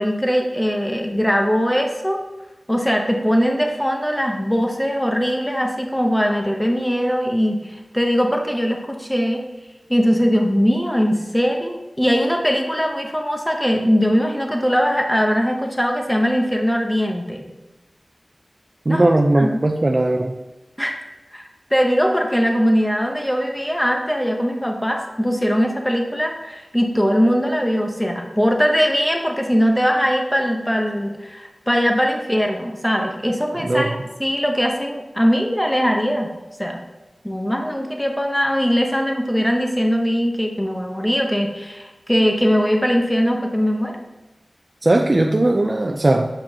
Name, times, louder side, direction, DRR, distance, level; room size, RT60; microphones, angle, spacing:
voice 1, 0.0-2.2 2.7-9.4 9.9-17.4 18.9-19.1 19.3-19.6 20.8-20.9 21.3-21.4 21.7-36.3 36.6-36.8 37.2-44.0, equal, 10° left, 2 dB, 0.9 m, -20 dB
voice 2, 18.9-20.3 33.6-33.9 44.8-46.3, right 2 dB, 40° right, 2 dB, 0.5 m, -18 dB
7.6 x 5.0 x 2.8 m, 1.1 s
wide cardioid pair, 60°, 0 cm